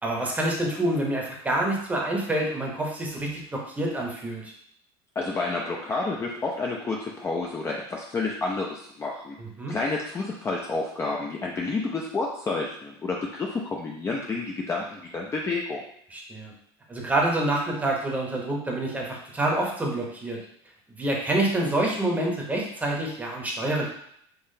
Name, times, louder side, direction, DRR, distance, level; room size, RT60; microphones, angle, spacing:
voice 1, 0.0-4.5 9.4-9.8 16.1-16.5 16.9-20.4 21.0-23.9, right 1 dB, 10° right, -1 dB, 0.8 m, -27 dB
voice 2, 5.2-9.3 9.7-15.8, left 3 dB, 20° left, -1 dB, 0.4 m, -30 dB
3.8 x 2.8 x 2.7 m, 0.68 s
supercardioid pair, 125°, 13 cm